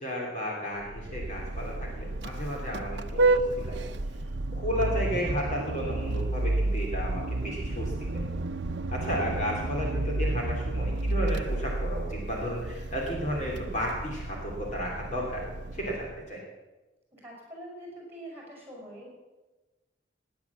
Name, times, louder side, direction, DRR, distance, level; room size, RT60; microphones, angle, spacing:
voice 1, 0.0-3.8 4.5-8.2 8.9-15.4 15.7-16.4, equal, 40° left, -2 dB, 2.9 m, -33 dB
Vehicle horn car horn honking, 0.8-16.2, right 2 dB, 65° right, 0.7 m, -31 dB
voice 2, 17.1-19.2, right 1 dB, 10° right, -2 dB, 5.7 m, -44 dB
18.0 x 9.5 x 7.3 m, 1.1 s
head